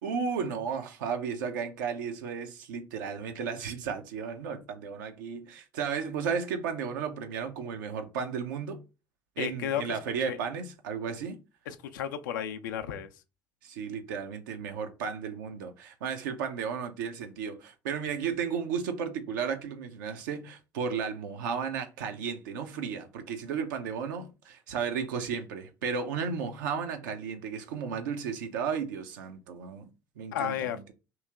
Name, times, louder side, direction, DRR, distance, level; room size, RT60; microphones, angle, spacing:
voice 1, 0.0-8.8 9.4-11.4 13.6-29.9 30.2-30.9, right 6 dB, 70° right, 0.6 m, -34 dB
voice 2, 9.4-10.0 10.3-10.4 11.7-13.1 30.3-30.8, left 9 dB, 70° left, 0.4 m, -33 dB
3.1 x 2.8 x 3.4 m
figure-of-eight pair, 55°, 11 cm